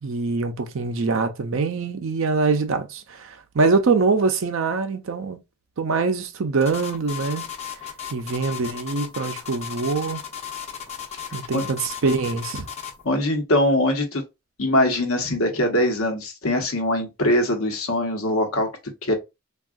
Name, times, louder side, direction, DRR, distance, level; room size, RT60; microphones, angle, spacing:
voice 1, 0.0-5.4 5.8-7.5 8.1-10.2 11.3-12.7, right 4 dB, 60° right, 0.5 m, -24 dB
sound 1, 6.6-13.0, left 8 dB, 30° left, 0.6 m, -35 dB
voice 2, 13.0-14.2 14.6-18.7 19.0-19.1, left 1 dB, 75° left, 1.0 m, -22 dB
3.5 x 2.3 x 2.4 m
head